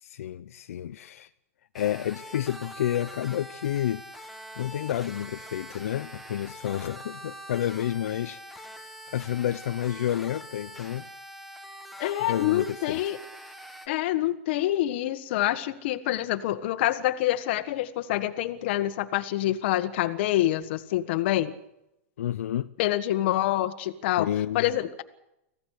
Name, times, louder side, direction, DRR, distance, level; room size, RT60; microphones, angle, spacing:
voice 1, 0.0-1.3 1.7-11.1 12.2-13.0 22.2-22.7 24.2-24.7, left 11 dB, 80° left, 0.8 m, -30 dB
sound 1, 1.7-13.9, equal, ahead, 1.8 m, -44 dB
voice 2, 12.0-13.2 13.9-21.5 22.8-24.3 24.5-25.0, left 14 dB, 50° left, 1.6 m, -26 dB
25.5 x 16.5 x 6.6 m
supercardioid pair, 165°, 8 cm